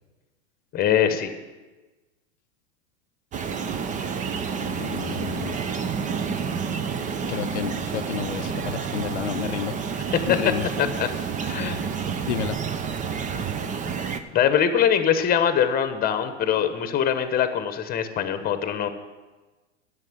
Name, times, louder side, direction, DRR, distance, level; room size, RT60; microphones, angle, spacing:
voice 1, 0.7-1.3 10.3-10.4 10.8-11.1 11.4-11.8 14.3-18.9, left 9 dB, 25° left, 9 dB, 1.1 m, -22 dB
sound 1, 3.3-14.2, right 6 dB, 20° right, 0.7 m, -29 dB
voice 2, 4.5-5.6 7.3-9.7 10.3-10.7 11.1-11.2 12.2-12.6, left 12 dB, 75° left, 8 dB, 0.6 m, -31 dB
11.0 x 6.9 x 8.7 m, 1.2 s
hypercardioid pair, 105°, 35 cm